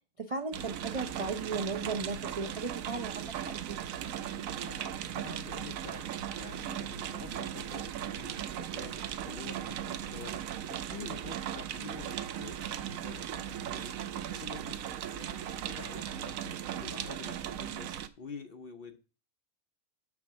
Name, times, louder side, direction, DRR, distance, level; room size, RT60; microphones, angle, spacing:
voice 1, 0.2-3.8, right 4 dB, 40° right, 5 dB, 0.5 m, -36 dB
sound 1, 0.5-18.1, right 10 dB, 70° right, 1.0 m, -38 dB
voice 2, 4.6-19.0, left 5 dB, 50° left, 7 dB, 0.8 m, -48 dB
6.0 x 5.8 x 7.0 m, 0.35 s
omnidirectional pair, 1.5 m